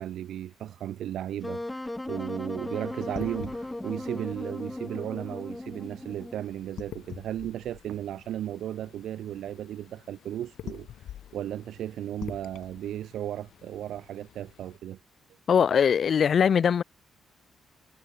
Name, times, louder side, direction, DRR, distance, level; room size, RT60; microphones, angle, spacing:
voice 1, 0.0-15.0, right 11 dB, 75° right, 1.3 m, -35 dB
Wind instrument woodwind instrument, 1.4-6.5, left 1 dB, 10° left, 1.8 m, -37 dB
sound 1, 3.0-14.8, left 11 dB, 75° left, 6.0 m, -47 dB
voice 2, 15.5-16.8, left 7 dB, 45° left, 1.0 m, -21 dB
cardioid pair, 140°, 0 cm